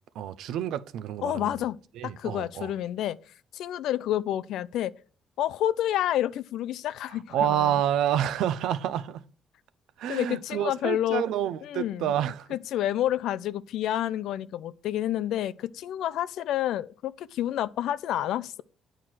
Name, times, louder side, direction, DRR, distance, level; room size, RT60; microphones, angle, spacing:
voice 1, 0.1-1.5 2.0-2.7 7.3-9.2 10.0-12.5, right 10 dB, 85° right, 0.6 m, -28 dB
voice 2, 1.2-1.8 2.0-3.2 3.5-4.9 5.4-7.7 10.1-11.2 11.6-12.1 12.5-18.6, left 12 dB, 85° left, 0.4 m, -29 dB
8.9 x 4.7 x 5.9 m
cardioid pair, 90°, 0 cm